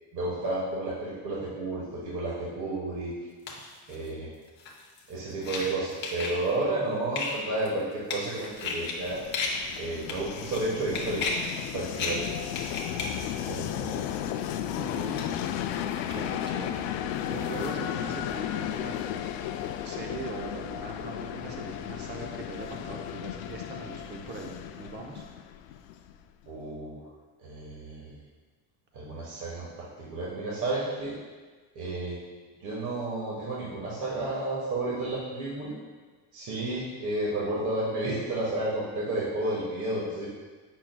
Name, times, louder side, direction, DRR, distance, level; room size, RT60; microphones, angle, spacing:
voice 1, 0.1-3.1 3.9-4.3 5.1-9.2 9.8-11.3 11.7-12.4 13.4-14.0 26.5-27.0 27.4-28.1 28.9-31.1 31.7-32.2 32.6-35.7 36.3-40.3, right 2 dB, 45° right, -6 dB, 1.3 m, -32 dB
sound 1, 3.5-4.1 4.5-6.5 7.2-9.8 10.0-10.6 10.9-11.5 11.8-12.2 12.5-13.1 13.5-13.6 15.2-16.2 16.8-17.7 18.3-18.7 19.6-19.7, left 3 dB, 25° left, 0.7 m, -34 dB
Train, 8.5-26.3, left 10 dB, 70° left, 0.5 m, -34 dB
voice 2, 14.8-15.3 16.1-16.8 17.3-19.0 19.8-25.3, right 3 dB, 25° right, 1 dB, 0.7 m, -40 dB
7.5 x 6.2 x 2.2 m, 1.4 s
cardioid pair, 160°, 43 cm